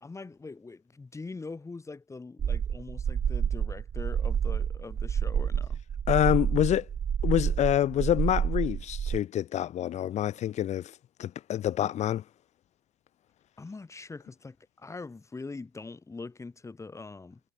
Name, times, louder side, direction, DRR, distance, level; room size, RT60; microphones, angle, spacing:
voice 1, 0.0-5.8 13.6-17.4, left 3 dB, 20° left, 3.5 m, -43 dB
sound 1, 2.4-9.2, right 8 dB, 30° right, 0.5 m, -29 dB
voice 2, 6.1-6.8 7.2-10.9 11.2-12.2, left 11 dB, 50° left, 1.4 m, -27 dB
hypercardioid pair, 70°, 15 cm